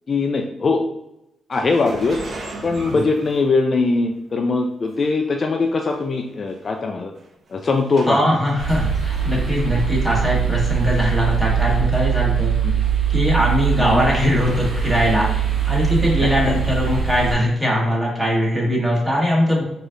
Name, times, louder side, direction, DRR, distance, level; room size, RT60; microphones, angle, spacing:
voice 1, 0.1-0.8 1.5-2.2 2.6-7.1 7.5-8.2 12.6-12.8 13.8-14.0 16.2-16.6, left 3 dB, 40° left, 3 dB, 0.3 m, -21 dB
sound 1, 1.5-4.1 4.9-5.0 5.9-6.0 6.3-6.6 7.2-8.5 8.9-9.5 9.8-9.9 11.1-11.2, right 2 dB, 55° right, 0.8 m, -37 dB
voice 2, 8.1-12.5 13.1-15.3 15.7-19.6, equal, 10° right, -4 dB, 1.4 m, -20 dB
sound 2, 8.6-17.3, right 7 dB, 80° right, 1.2 m, -22 dB
4.9 x 2.7 x 2.6 m, 0.85 s
cardioid pair, 100°, 0 cm